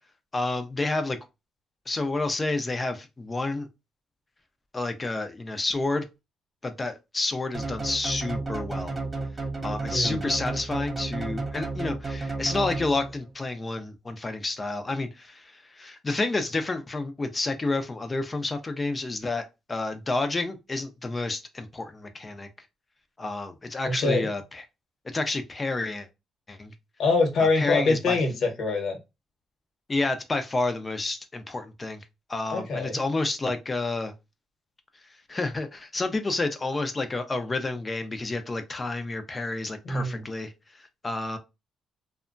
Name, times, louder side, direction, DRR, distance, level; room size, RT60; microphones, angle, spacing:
voice 1, 0.3-1.2 1.9-3.7 4.7-6.1 6.6-8.9 9.6-22.5 23.2-24.4 25.0-26.1 26.5-26.7 27.6-28.2 29.9-32.0 32.3-34.1 35.3-40.5 41.0-41.4, left 2 dB, 25° left, 0.6 m, -29 dB
sound 1, 7.5-13.3, right 3 dB, 30° right, 0.6 m, -32 dB
voice 2, 23.8-24.3 27.0-29.0 32.5-33.0 39.8-40.2, left 3 dB, 65° left, 1.1 m, -24 dB
2.7 x 2.2 x 2.5 m
cardioid pair, 90°, 0 cm